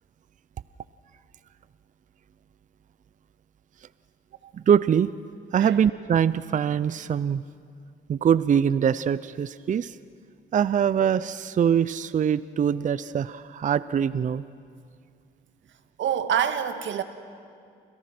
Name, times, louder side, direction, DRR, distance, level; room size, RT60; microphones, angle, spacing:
voice 1, 4.5-5.1 5.5-7.4 8.1-10.0 10.5-14.4, right 8 dB, 40° right, 16 dB, 0.5 m, -23 dB
voice 2, 16.0-17.0, right 9 dB, 70° right, 9 dB, 1.7 m, -26 dB
30.0 x 27.0 x 6.1 m, 2.3 s
cardioid pair, 90°, 20 cm